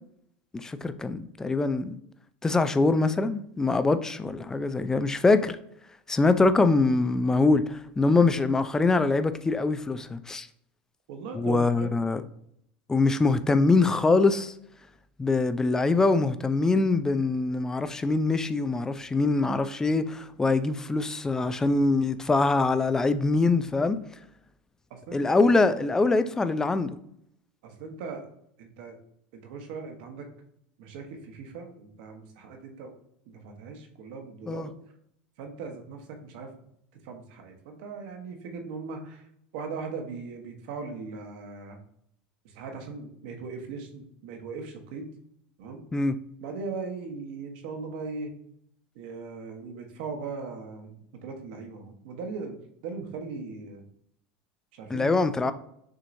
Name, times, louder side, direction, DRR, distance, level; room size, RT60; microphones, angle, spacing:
voice 1, 0.5-2.0 2.4-5.6 6.1-10.5 11.3-12.2 12.9-14.5 15.2-24.0 25.1-27.0 34.5-34.7 45.9-46.1 54.9-55.5, left 3 dB, 10° left, 0.3 m, -23 dB
voice 2, 11.1-11.9 24.9-26.1 27.6-28.3 28.6-29.0 29.3-30.3 30.8-32.9 33.3-34.7 35.4-36.5 37.0-39.3 39.5-41.8 42.4-45.1 45.6-45.8 46.4-48.3 48.9-52.6 52.8-53.8 54.7-55.2, right 4 dB, 70° right, 1.1 m, -39 dB
6.2 x 2.9 x 2.6 m
supercardioid pair, 120°, 5 cm